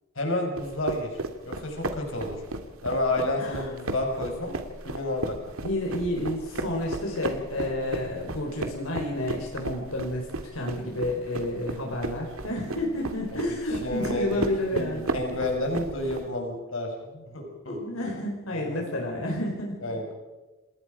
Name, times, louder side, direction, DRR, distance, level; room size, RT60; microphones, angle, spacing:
voice 1, 0.1-1.1 1.4-2.4 2.8-4.5 4.8-5.4 13.3-13.4 13.8-14.3 14.7-17.8 18.5-18.8 19.8-20.1, left 1 dB, 70° left, 2 dB, 5.3 m, -30 dB
sound 1, 0.6-16.2, right 2 dB, 85° right, 2.1 m, -35 dB
voice 2, 3.4-3.7 5.6-15.1 17.8-19.8, left 1 dB, 90° left, 0 dB, 4.8 m, -30 dB
27.5 x 20.0 x 5.1 m, 1.2 s
head